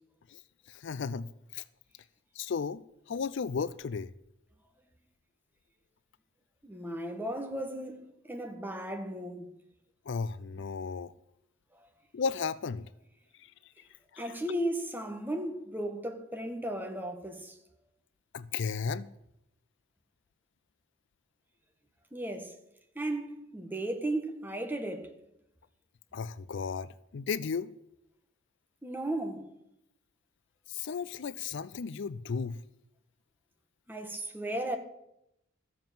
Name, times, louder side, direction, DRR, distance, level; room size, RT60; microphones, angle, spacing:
voice 1, 0.7-1.6 2.3-2.8 3.1-4.1 10.1-11.1 12.1-12.9 14.1-14.4 18.3-19.1 26.1-27.7 30.7-32.6, left 5 dB, 65° left, 0.4 m, -34 dB
voice 2, 6.6-9.5 14.2-17.6 22.1-22.5 22.9-25.1 28.8-29.4 33.9-34.8, right 1 dB, 10° right, 1.5 m, -35 dB
14.0 x 7.3 x 7.5 m
head